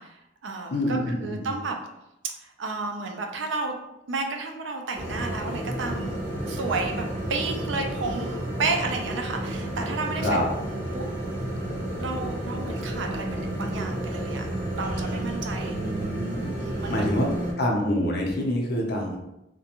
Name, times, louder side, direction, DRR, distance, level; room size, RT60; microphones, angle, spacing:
voice 1, 0.0-1.8 2.4-3.8 4.1-6.2 6.5-11.1 12.0-15.8 16.5-17.1, right 3 dB, 90° right, 3 dB, 0.4 m, -32 dB
voice 2, 0.7-1.5 10.2-10.5 15.7-16.5 16.9-17.3 17.6-19.2, equal, 60° left, -1 dB, 0.6 m, -26 dB
sound 1, 4.9-17.5, right 1 dB, 10° right, 1.0 m, -31 dB
2.5 x 2.2 x 2.8 m, 0.89 s
head